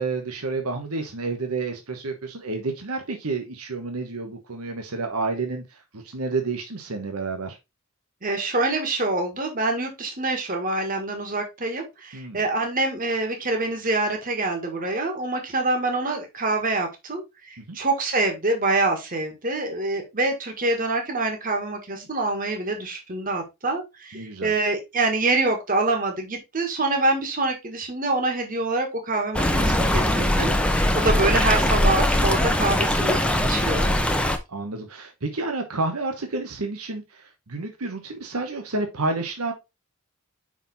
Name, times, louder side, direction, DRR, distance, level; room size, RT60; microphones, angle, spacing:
voice 1, 0.0-7.6 12.1-12.4 17.6-17.8 24.1-24.5 34.5-39.5, right 3 dB, 90° right, 4 dB, 1.1 m, -30 dB
voice 2, 8.2-33.9, right 2 dB, 40° right, 4 dB, 1.6 m, -26 dB
Stream, 29.3-34.4, left 1 dB, 5° left, 0.7 m, -21 dB
5.6 x 5.0 x 4.0 m, 0.23 s
head